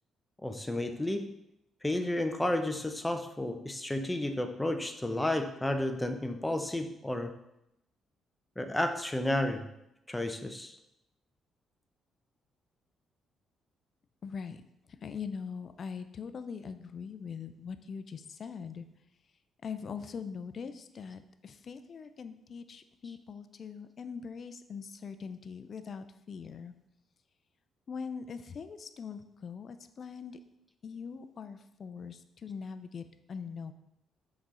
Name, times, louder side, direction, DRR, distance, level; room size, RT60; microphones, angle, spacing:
voice 1, 0.4-1.3 1.8-7.4 8.6-9.7 10.1-10.8 23.0-23.2, left 1 dB, 10° left, 7 dB, 0.7 m, -32 dB
voice 2, 14.2-14.6 15.0-18.9 19.6-26.7 27.9-30.4 30.8-33.7, left 6 dB, 50° left, 11 dB, 0.5 m, -42 dB
5.9 x 4.2 x 5.0 m, 0.85 s
cardioid pair, 90°, 0 cm